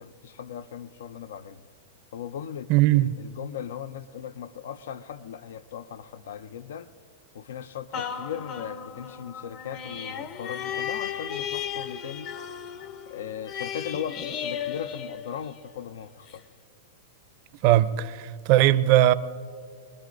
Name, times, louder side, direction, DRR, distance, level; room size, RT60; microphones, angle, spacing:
voice 1, 0.0-1.6 2.1-6.9 7.3-12.3 13.1-16.4, left 9 dB, 75° left, 0.5 m, -38 dB
voice 2, 2.7-3.2 17.6-19.1, right 14 dB, 50° right, 0.6 m, -19 dB
sound 1, 7.9-15.8 16.3-16.4, left 8 dB, 45° left, 0.8 m, -35 dB
24.0 x 21.0 x 2.6 m
hypercardioid pair, 120°, 0 cm